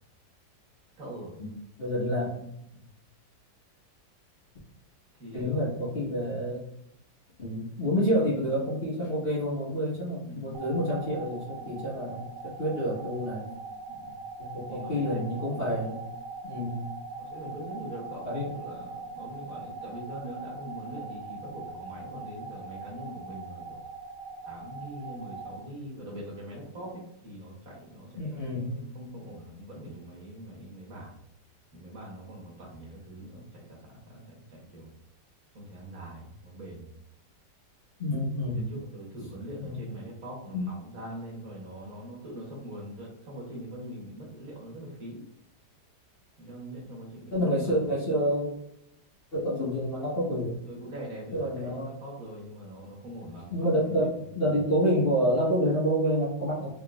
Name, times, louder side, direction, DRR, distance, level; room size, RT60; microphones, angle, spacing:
voice 1, 1.0-1.3 2.7-2.8 5.2-5.7 10.2-10.6 13.9-14.2 14.7-15.3 17.2-23.8 24.4-31.2 31.7-34.9 35.5-36.9 38.5-45.2 46.4-47.8 50.6-53.9 54.2-54.6, right 1 dB, 55° right, -3 dB, 1.5 m, -43 dB
voice 2, 1.8-2.3 5.3-6.6 7.4-13.5 14.4-16.0 16.4-16.8 18.2-18.5 28.2-28.7 38.0-38.7 39.6-39.8 40.5-40.6 47.3-48.5 49.3-50.5 51.3-51.9 53.5-56.7, equal, 35° left, -7 dB, 1.2 m, -28 dB
sound 1, 10.5-25.6, right 3 dB, 75° right, 1.3 m, -41 dB
3.9 x 3.7 x 2.3 m, 0.80 s
omnidirectional pair, 1.9 m